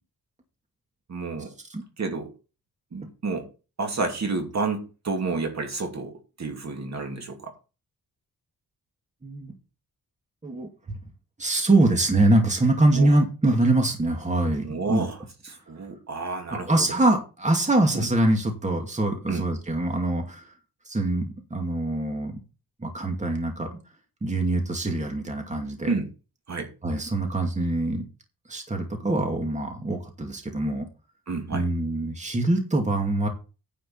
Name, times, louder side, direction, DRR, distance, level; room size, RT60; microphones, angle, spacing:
voice 1, 1.1-1.5 2.0-2.3 2.9-3.5 3.8-7.5 12.9-13.1 14.6-15.2 15.4-16.9 17.9-18.1 19.3-19.4 25.9-26.1 26.5-26.7 31.3-31.7, right 4 dB, 45° right, 2.7 m, -30 dB
voice 2, 9.2-9.5 10.4-10.7 11.4-15.1 16.7-20.5 20.9-22.3 22.8-23.8 24.2-25.9 26.8-28.0 28.5-30.9 31.5-33.3, right 2 dB, 20° right, 2.4 m, -24 dB
10.0 x 5.5 x 7.2 m
wide cardioid pair, 135°, 36 cm